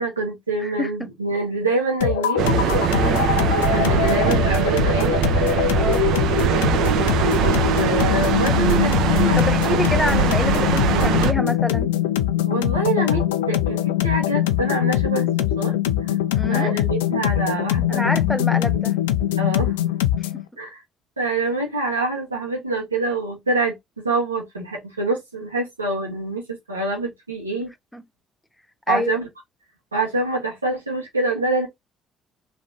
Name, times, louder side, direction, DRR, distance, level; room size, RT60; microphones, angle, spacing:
voice 1, 0.0-2.4 3.3-5.2 7.7-9.4 9.7-10.0 12.4-15.7 16.0-16.1 16.5-18.2 18.7-18.8 19.4-19.7 20.6-20.8 21.2-27.7 28.9-29.3 29.9-31.7, right 2 dB, 85° right, 1.3 m, -26 dB
voice 2, 0.6-1.1 3.0-3.3 5.7-6.0 9.4-11.9 16.3-16.7 17.9-19.0 20.2-20.3 27.9-28.0 28.9-29.2, left 1 dB, 5° left, 0.7 m, -27 dB
sound 1, 2.0-20.4, left 12 dB, 75° left, 0.3 m, -22 dB
sound 2, 2.4-11.3, right 8 dB, 65° right, 0.7 m, -21 dB
3.4 x 3.2 x 2.7 m
figure-of-eight pair, 45°, 0 cm